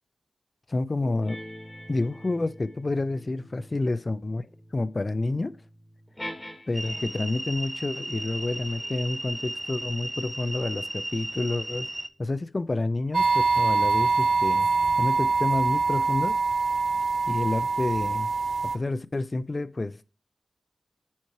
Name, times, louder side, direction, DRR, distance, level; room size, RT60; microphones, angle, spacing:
voice 1, 0.7-1.4 1.9-4.5 4.7-5.6 6.7-11.9 12.2-14.7 15.0-16.3 17.3-18.3 18.6-20.0, left 2 dB, 45° left, 0.3 m, -29 dB
sound 1, 1.0-7.4 8.2-13.1, left 1 dB, 25° left, 1.3 m, -46 dB
sound 2, 6.7-12.1, right 1 dB, 20° right, 0.5 m, -35 dB
sound 3, 13.1-18.8, right 4 dB, 75° right, 0.4 m, -24 dB
7.1 x 3.1 x 4.5 m
cardioid pair, 55°, 0 cm